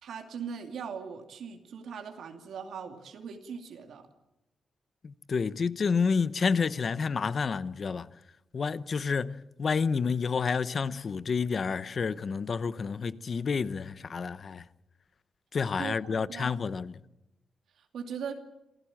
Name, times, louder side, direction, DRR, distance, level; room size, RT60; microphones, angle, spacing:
voice 1, 0.0-4.1 15.8-16.6 17.8-18.3, right 6 dB, 85° right, 2.4 m, -40 dB
voice 2, 5.0-8.1 8.5-14.6 15.5-17.0, left 5 dB, 40° left, 0.8 m, -29 dB
27.0 x 16.5 x 8.8 m
wide cardioid pair, 145°, 0 cm